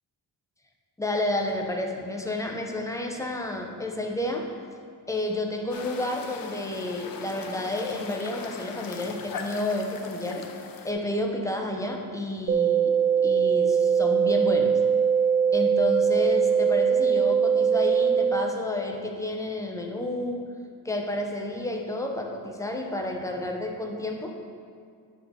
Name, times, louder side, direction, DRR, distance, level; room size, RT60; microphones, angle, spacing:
voice 1, 1.0-4.5 5.1-10.5 10.8-14.8 15.5-20.5 20.8-24.4, left 1 dB, 5° left, 1 dB, 0.6 m, -30 dB
sound 1, 5.7-10.9, left 5 dB, 55° left, 0.7 m, -39 dB
sound 2, 12.5-18.5, right 7 dB, 30° right, 0.4 m, -21 dB
8.4 x 3.6 x 5.4 m, 2.2 s
wide cardioid pair, 120°, 43 cm